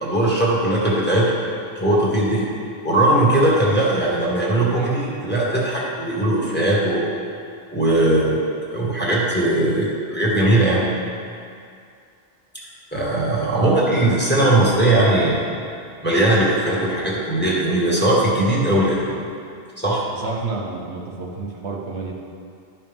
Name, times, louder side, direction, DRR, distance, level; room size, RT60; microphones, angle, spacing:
voice 1, 0.0-1.3 1.8-2.5 2.8-7.1 7.7-8.4 8.7-10.8 12.9-15.5 16.0-19.1 19.8-20.0, right 1 dB, 10° left, -6 dB, 1.7 m, -19 dB
voice 2, 13.4-13.8 20.1-22.1, right 3 dB, 75° right, -2 dB, 1.3 m, -30 dB
12.0 x 5.8 x 3.6 m, 2.3 s
omnidirectional pair, 1.2 m